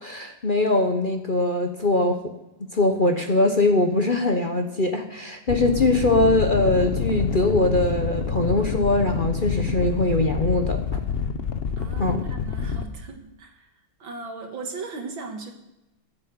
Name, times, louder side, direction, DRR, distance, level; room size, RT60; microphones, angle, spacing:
voice 1, 0.0-2.2 2.7-10.8 12.0-12.3, left 2 dB, 40° left, 4 dB, 0.8 m, -22 dB
sound 1, 5.5-12.9, left 6 dB, 70° left, 0.5 m, -27 dB
voice 2, 11.8-13.7 14.0-15.5, right 3 dB, 70° right, 4 dB, 2.3 m, -37 dB
15.0 x 7.9 x 7.7 m, 0.94 s
omnidirectional pair, 2.3 m